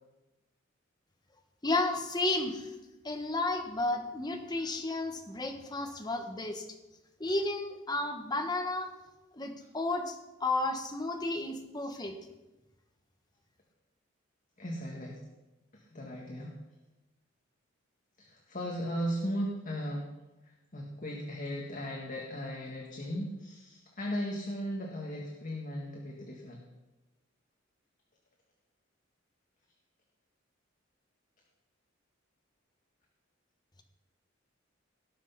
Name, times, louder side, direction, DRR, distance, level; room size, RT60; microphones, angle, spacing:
voice 1, 1.6-2.7 3.0-6.7 7.2-8.9 9.3-12.1, left 2 dB, 20° left, 4 dB, 1.3 m, -32 dB
voice 2, 14.6-15.2 15.7-16.6 18.2-20.1 20.4-26.6, equal, 40° left, -1 dB, 1.7 m, -37 dB
18.0 x 6.3 x 5.8 m, 1.1 s
head